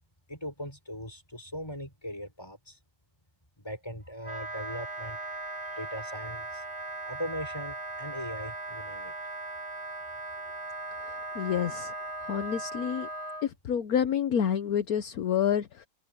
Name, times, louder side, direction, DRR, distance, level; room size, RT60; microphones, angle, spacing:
voice 1, 0.3-2.8 3.6-5.2 5.8-6.6 7.0-9.1, equal, 15° left, 6.9 m, -39 dB
Wind instrument woodwind instrument, 4.2-13.5, right 2 dB, 15° right, 6.4 m, -38 dB
voice 2, 11.3-11.9 12.3-13.1 13.4-15.9, left 8 dB, 65° left, 1.3 m, -28 dB
omnidirectional pair, 1.8 m